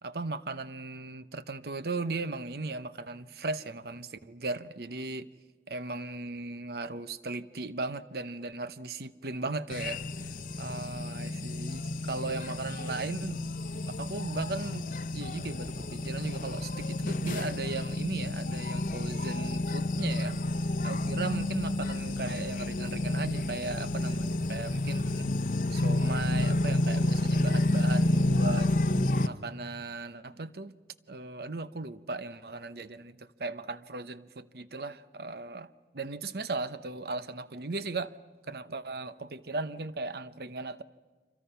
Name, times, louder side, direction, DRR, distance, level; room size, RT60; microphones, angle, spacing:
voice 1, 0.0-5.3 5.7-13.5 14.0-20.4 20.8-25.3 25.7-28.7 29.2-30.7 31.1-38.2 38.5-40.8, right 3 dB, 60° right, 0.8 m, -37 dB
sound 1, 9.7-29.3, left 1 dB, 45° left, 0.8 m, -30 dB
29.5 x 26.0 x 5.7 m
head